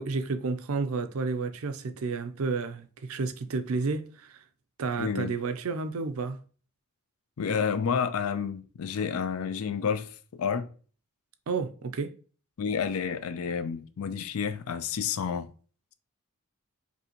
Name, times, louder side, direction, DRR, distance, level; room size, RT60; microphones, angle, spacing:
voice 1, 0.0-4.4 4.8-6.4 11.5-12.1, right 4 dB, 70° right, 0.5 m, -31 dB
voice 2, 5.0-5.3 7.4-10.7 12.6-15.5, left 6 dB, 75° left, 0.4 m, -30 dB
5.3 x 2.7 x 2.9 m
head